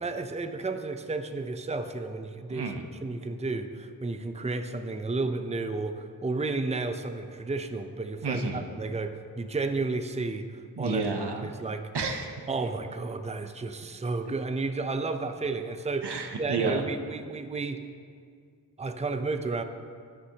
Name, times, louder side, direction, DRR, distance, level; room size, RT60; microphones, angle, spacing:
voice 1, 0.0-2.7 3.0-10.5 10.8-11.0 11.4-11.9 12.5-16.1 16.4-17.8 18.8-19.6, right 3 dB, 15° right, 8 dB, 0.5 m, -32 dB
voice 2, 2.5-2.8 8.2-8.6 10.8-11.5 11.9-12.4 14.2-14.3 16.0-16.8, right 4 dB, 90° right, 5 dB, 0.9 m, -31 dB
12.5 x 9.8 x 2.8 m, 2.1 s
wide cardioid pair, 50°, 39 cm